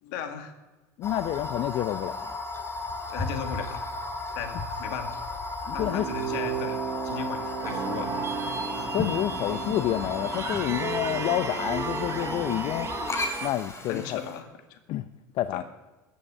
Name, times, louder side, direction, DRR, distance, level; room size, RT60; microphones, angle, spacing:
voice 1, 0.0-0.5 3.1-3.9 4.4-5.3 5.7-8.1 13.9-14.8 15.5-15.6, left 7 dB, 70° left, 6 dB, 2.1 m, -36 dB
voice 2, 1.0-2.3 5.7-6.1 8.9-12.9 13.4-14.4 14.9-15.1 15.3-15.6, left 13 dB, 55° left, 13 dB, 0.6 m, -29 dB
sound 1, 1.0-14.4, left 2 dB, 25° left, 3.0 m, -34 dB
sound 2, 5.6-11.4, right 8 dB, 75° right, 2.0 m, -36 dB
sound 3, 7.6-13.5, right 5 dB, 30° right, 2.3 m, -34 dB
14.5 x 8.6 x 8.6 m, 1.2 s
hypercardioid pair, 85°, 11 cm